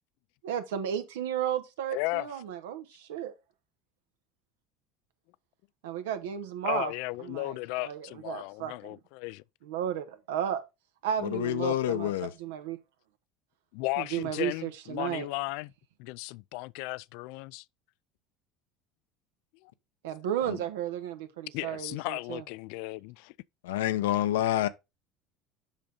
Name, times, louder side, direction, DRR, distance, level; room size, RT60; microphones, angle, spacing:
voice 1, 0.4-3.3 5.8-6.9 7.2-9.0 9.6-10.6 11.0-12.1 12.4-12.8 14.0-15.3 20.0-22.4, right 10 dB, 85° right, 1.2 m, -33 dB
voice 2, 1.9-2.3 6.6-9.4 13.7-15.7 16.0-17.6 19.6-19.7 21.5-23.3, left 22 dB, 70° left, 0.3 m, -35 dB
voice 3, 11.2-12.3 20.5-20.6 23.6-24.7, left 13 dB, 85° left, 0.7 m, -28 dB
7.4 x 5.2 x 3.9 m
supercardioid pair, 90°, 0 cm